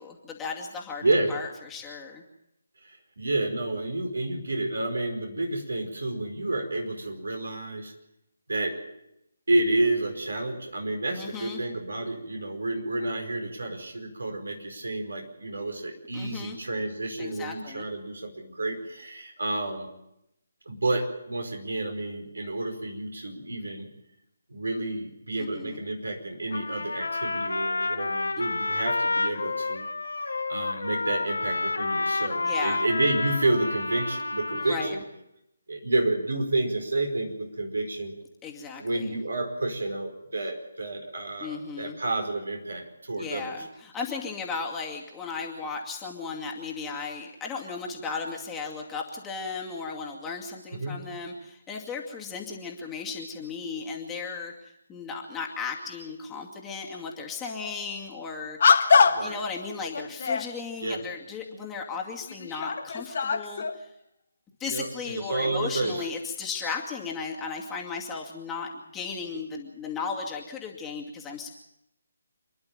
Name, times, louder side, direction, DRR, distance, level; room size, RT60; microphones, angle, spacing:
voice 1, 0.0-1.0 1.3-2.2 11.2-11.6 16.1-16.6 17.2-17.9 25.4-25.8 32.2-32.8 34.5-35.0 38.4-39.2 41.4-42.0 43.2-58.8 59.2-63.9 64.6-71.5, left 5 dB, 10° left, -1 dB, 2.4 m, -36 dB
voice 2, 1.0-1.4 2.8-7.9 8.5-8.8 9.5-19.9 20.6-23.9 24.5-29.9 30.2-35.0 35.7-38.1 38.8-43.5 50.7-51.0 59.0-59.4 60.8-61.0 64.7-66.1, right 2 dB, 70° right, 4 dB, 5.0 m, -30 dB
Trumpet, 26.5-34.9, left 3 dB, 70° left, 1.9 m, -29 dB
sound 1, 57.6-57.8 58.6-59.4 59.9-60.5 61.5-61.6 62.2-63.8, left 5 dB, 45° left, 1.5 m, -23 dB
28.0 x 11.5 x 9.1 m, 0.84 s
figure-of-eight pair, 145°, 0 cm